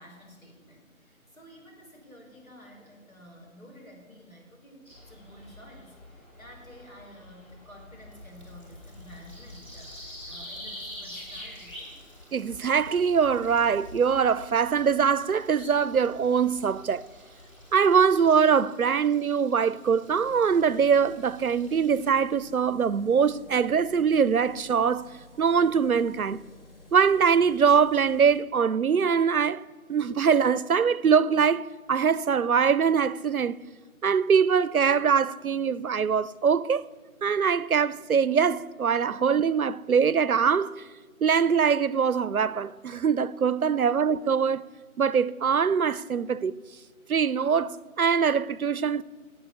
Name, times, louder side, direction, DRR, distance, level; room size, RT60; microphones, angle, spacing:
voice 1, 0.0-12.1 43.8-43.9, equal, 70° left, 4.8 m, -51 dB
sound 1, 4.8-18.4, left 1 dB, 5° left, 3.2 m, -46 dB
Water tap faucet, 7.7-22.2, equal, 20° left, 2.2 m, -58 dB
voice 2, 12.3-17.0 17.7-25.1 25.4-26.4 26.9-29.6 29.9-33.6 34.0-36.8 37.2-40.7 41.2-44.6 45.0-46.5 47.1-49.0, right 6 dB, 80° right, 0.6 m, -23 dB
sound 2, 18.2-28.4, left 2 dB, 40° left, 2.5 m, -53 dB
13.0 x 8.0 x 9.5 m
figure-of-eight pair, 170°, 43 cm